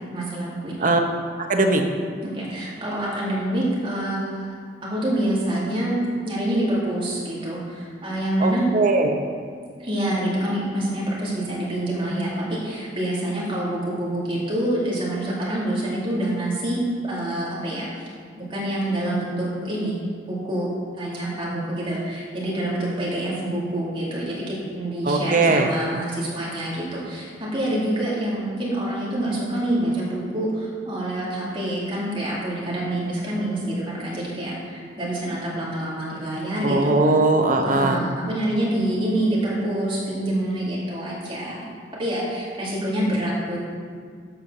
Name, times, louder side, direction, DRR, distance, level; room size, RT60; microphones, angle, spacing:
voice 1, 0.1-0.9 2.2-4.5 4.8-5.9 6.2-8.7 9.8-18.1 18.4-20.0 20.3-20.7 21.0-37.2 37.6-41.7 42.0-43.6, right 1 dB, 30° right, -6 dB, 2.3 m, -26 dB
voice 2, 1.4-1.8 8.4-9.2 25.1-25.7 36.6-38.0, right 2 dB, 45° right, 4 dB, 0.8 m, -19 dB
8.1 x 5.7 x 6.1 m, 2.1 s
head